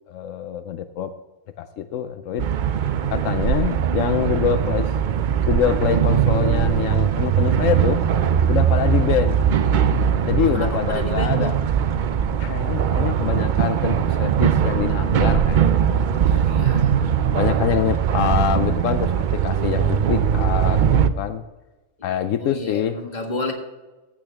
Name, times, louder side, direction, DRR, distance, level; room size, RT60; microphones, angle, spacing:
voice 1, 0.1-1.1 1.6-2.5 3.1-4.9 5.5-8.0 8.5-9.4 10.3-11.5 12.4-16.6 17.4-21.4 22.0-23.0, left 9 dB, 85° left, 10 dB, 1.0 m, -25 dB
sound 1, 2.4-21.1, right 8 dB, 60° right, 0.5 m, -20 dB
voice 2, 10.4-11.6 16.2-17.4 22.4-23.5, left 1 dB, 35° left, 1 dB, 1.9 m, -32 dB
15.0 x 8.0 x 3.4 m, 1.1 s
omnidirectional pair, 1.3 m